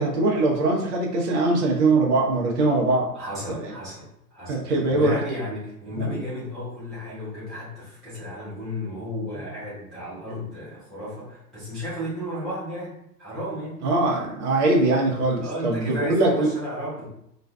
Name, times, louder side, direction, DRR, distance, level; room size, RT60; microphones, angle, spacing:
voice 1, 0.0-3.1 3.5-3.7 4.5-5.2 6.0-6.2 13.8-16.5, right 2 dB, 45° right, -1 dB, 0.8 m, -22 dB
voice 2, 3.1-13.8 15.4-17.1, left 1 dB, ahead, -15 dB, 0.4 m, -33 dB
2.5 x 2.4 x 2.2 m, 0.79 s
figure-of-eight pair, 100°, 49 cm